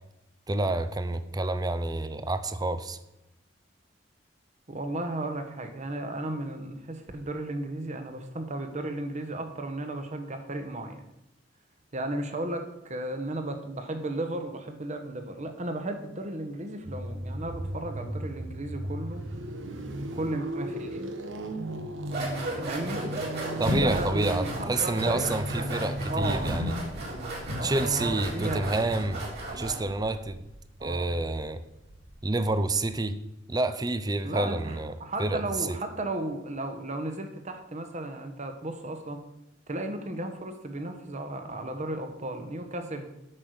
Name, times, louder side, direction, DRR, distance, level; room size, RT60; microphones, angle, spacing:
voice 1, 0.5-3.0 23.6-26.7 27.6-29.2 29.5-30.5 30.8-31.6 32.2-33.2 33.5-35.8, right 2 dB, 20° right, 12 dB, 0.6 m, -29 dB
voice 2, 4.7-11.0 11.9-19.3 20.0-21.0 22.2-23.0 23.5-25.3 26.1-26.5 27.5-28.7 30.8-31.1 32.3-32.5 34.2-39.2 39.7-43.1, right 1 dB, 40° right, 7 dB, 1.2 m, -35 dB
sound 1, 16.8-33.0, right 1 dB, 85° right, 1.1 m, -38 dB
sound 2, 22.1-29.9, equal, 60° right, 3.5 m, -33 dB
8.7 x 6.1 x 6.5 m, 0.89 s
head